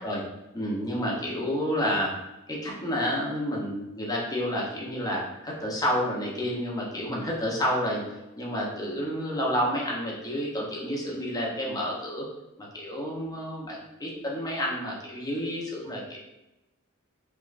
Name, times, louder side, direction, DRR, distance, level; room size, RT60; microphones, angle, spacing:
voice 1, 0.5-2.1 2.5-8.0 8.4-12.2 12.6-16.2, equal, 15° left, -3 dB, 0.7 m, -30 dB
3.2 x 2.9 x 2.4 m, 0.94 s
head